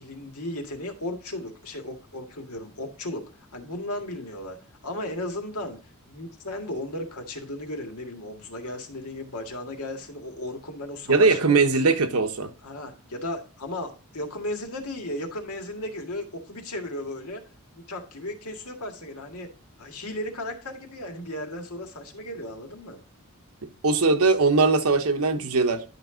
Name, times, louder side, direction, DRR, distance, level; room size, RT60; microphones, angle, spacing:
voice 1, 0.0-3.3 3.5-4.6 4.8-5.8 6.1-11.6 12.6-17.4 17.7-19.5 19.8-23.0, left 1 dB, 85° left, 1.9 m, -35 dB
voice 2, 11.1-12.5 23.8-25.8, right 3 dB, 80° right, 1.1 m, -20 dB
10.5 x 5.3 x 3.8 m
head